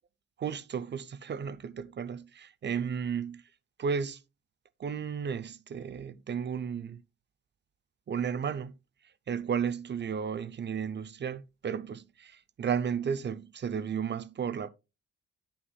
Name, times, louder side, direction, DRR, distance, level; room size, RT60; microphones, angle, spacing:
voice 1, 0.4-3.4 3.8-4.2 4.8-7.0 8.1-8.7 9.3-14.7, right 7 dB, 35° right, 0.6 m, -33 dB
9.3 x 8.7 x 2.3 m
cardioid pair, 90°, 30 cm